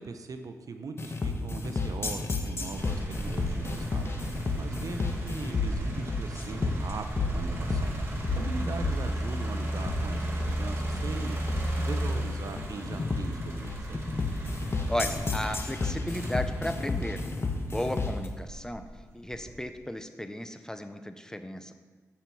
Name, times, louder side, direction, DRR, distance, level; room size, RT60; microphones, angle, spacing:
voice 1, 0.0-4.1 4.6-7.9 8.3-14.0, right 4 dB, 65° right, 7 dB, 0.8 m, -40 dB
sound 1, 1.0-18.3, left 3 dB, 40° left, 1.2 m, -32 dB
sound 2, 2.8-17.8 18.4-19.6, right 1 dB, 40° right, 2.1 m, -35 dB
voice 2, 14.9-17.2 17.6-21.7, left 1 dB, 10° left, 9 dB, 0.7 m, -35 dB
7.4 x 5.7 x 7.0 m, 1.4 s
cardioid pair, 60°, 6 cm